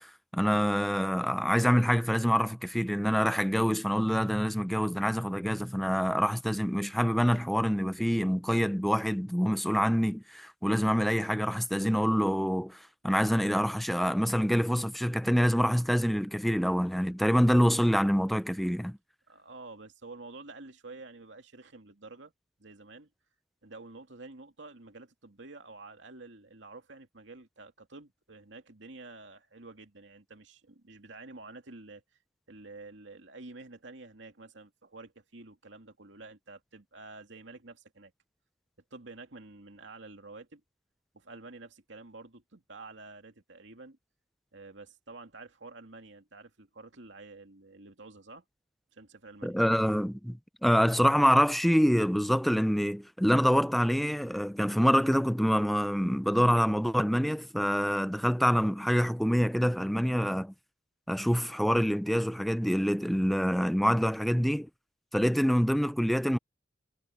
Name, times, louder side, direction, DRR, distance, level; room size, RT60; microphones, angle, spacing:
voice 1, 0.0-19.0 49.4-60.5 61.1-64.7 65.1-66.4, equal, ahead, 0.6 m, -26 dB
voice 2, 19.3-22.3 22.6-23.1 23.6-32.0 32.5-38.1 38.9-40.6 41.1-44.0 44.5-48.4 48.9-49.6, right 3 dB, 80° right, 2.5 m, -49 dB
head